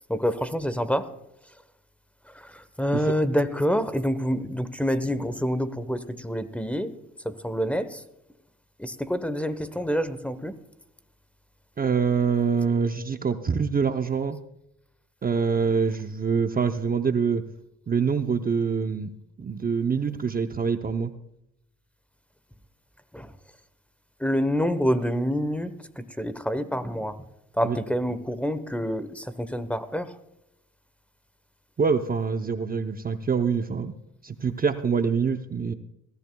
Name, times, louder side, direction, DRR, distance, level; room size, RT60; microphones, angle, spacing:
voice 1, 0.1-1.1 2.3-6.9 7.2-8.0 8.8-10.5 23.1-23.3 24.2-27.2 27.5-30.1, equal, 5° left, 13 dB, 1.0 m, -27 dB
voice 2, 11.8-14.4 15.2-17.4 17.9-19.1 19.4-21.1 27.6-27.8 31.8-33.9 34.2-35.7, right 6 dB, 30° right, 8 dB, 0.7 m, -25 dB
21.5 x 14.0 x 2.3 m, 0.82 s
cardioid pair, 90°, 30 cm